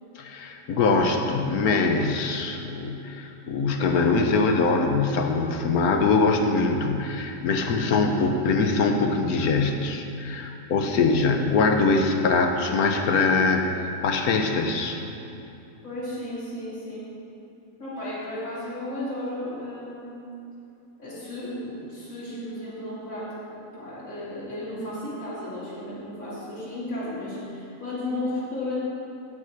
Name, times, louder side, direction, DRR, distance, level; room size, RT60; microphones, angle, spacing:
voice 1, 0.2-13.7 14.0-15.0, left 4 dB, 75° left, 4 dB, 1.2 m, -23 dB
voice 2, 10.8-11.2 15.8-17.1 17.8-20.2 21.0-28.7, left 1 dB, 55° left, -11 dB, 3.4 m, -34 dB
16.0 x 5.9 x 4.5 m, 2.8 s
omnidirectional pair, 1.7 m